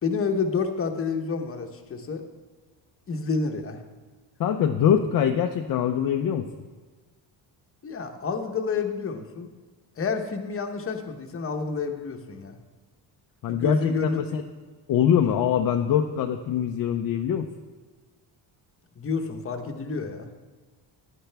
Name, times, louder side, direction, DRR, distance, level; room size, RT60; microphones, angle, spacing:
voice 1, 0.0-2.2 3.1-3.8 7.8-9.5 10.0-12.6 13.5-14.4 19.0-20.3, left 4 dB, 30° left, 5 dB, 1.0 m, -29 dB
voice 2, 4.4-6.5 13.4-14.4 14.9-17.5, left 9 dB, 50° left, 4 dB, 0.6 m, -23 dB
14.5 x 11.0 x 3.4 m, 1.4 s
cardioid pair, 150°, 44 cm